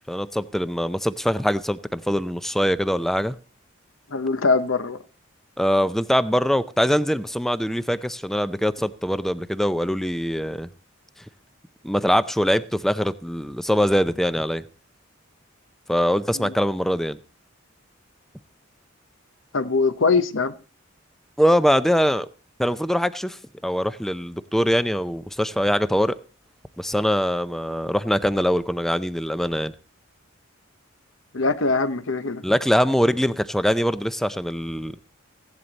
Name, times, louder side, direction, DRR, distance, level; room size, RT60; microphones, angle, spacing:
voice 1, 0.1-3.3 5.6-10.7 11.8-14.6 15.9-17.2 21.4-22.3 22.6-23.4 23.6-26.2 26.8-29.7 32.4-35.0, equal, ahead, 0.5 m, -23 dB
voice 2, 4.1-5.0 16.3-16.5 19.5-20.5 31.3-32.4, left 4 dB, 70° left, 1.0 m, -22 dB
16.0 x 11.0 x 4.1 m
head